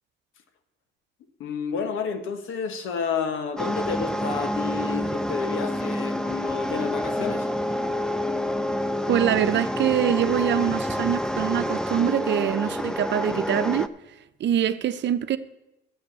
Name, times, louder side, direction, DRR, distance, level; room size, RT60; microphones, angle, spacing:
voice 1, 1.4-7.5, left 6 dB, 85° left, 1.4 m, -30 dB
sound 1, 3.6-13.9, left 1 dB, 5° left, 0.5 m, -28 dB
voice 2, 9.1-13.9 14.4-15.4, right 10 dB, 65° right, 0.8 m, -24 dB
11.0 x 8.0 x 6.9 m
cardioid pair, 90°, 20 cm